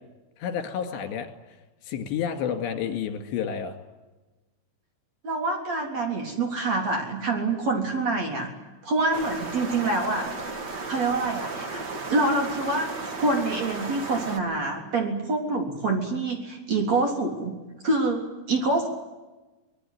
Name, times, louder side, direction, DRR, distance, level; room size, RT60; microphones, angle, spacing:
voice 1, 0.4-1.3 1.8-3.8, left 8 dB, 70° left, 6 dB, 4.4 m, -30 dB
voice 2, 5.2-8.5 8.8-10.3 10.9-11.8 12.1-17.5 17.8-18.2 18.5-18.9, right 2 dB, 40° right, 2 dB, 4.3 m, -26 dB
sound 1, 9.1-14.4, right 3 dB, 85° right, 0.9 m, -35 dB
25.5 x 20.5 x 9.4 m, 1.1 s
omnidirectional pair, 5.4 m